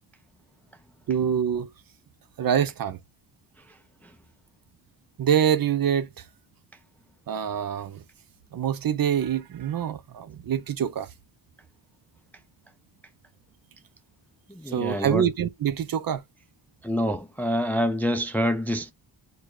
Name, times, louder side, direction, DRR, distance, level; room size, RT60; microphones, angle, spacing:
voice 1, 1.1-1.7 2.4-3.0 5.2-6.1 7.3-8.0 8.5-11.1 14.7-16.2, right 9 dB, 55° right, 0.5 m, -25 dB
voice 2, 14.6-15.2 16.8-18.9, equal, 5° left, 0.4 m, -26 dB
6.2 x 2.3 x 2.4 m
wide cardioid pair, 110°, 44 cm